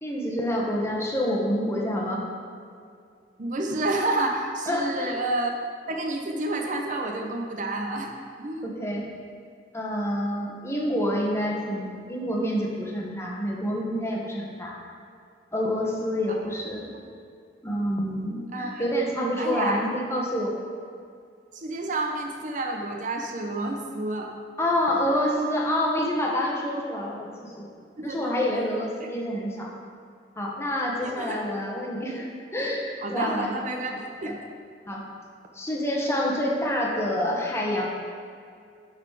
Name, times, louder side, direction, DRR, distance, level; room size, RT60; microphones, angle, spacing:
voice 1, 0.0-2.3 4.7-5.1 8.6-9.1 9.7-14.8 15.5-16.9 17.6-20.6 24.6-27.7 28.0-29.7 30.4-33.5 33.9-34.4 34.9-35.0 35.5-37.9, equal, 15° left, -2 dB, 1.2 m, -27 dB
voice 2, 3.4-5.5 5.9-8.1 8.4-8.7 18.5-18.8 19.4-19.8 21.5-24.3 28.0-28.7 31.0-31.4 33.0-33.9 34.2-34.3 36.3-36.4, right 2 dB, 45° right, 2 dB, 0.7 m, -29 dB
10.0 x 4.1 x 4.7 m, 2.3 s
head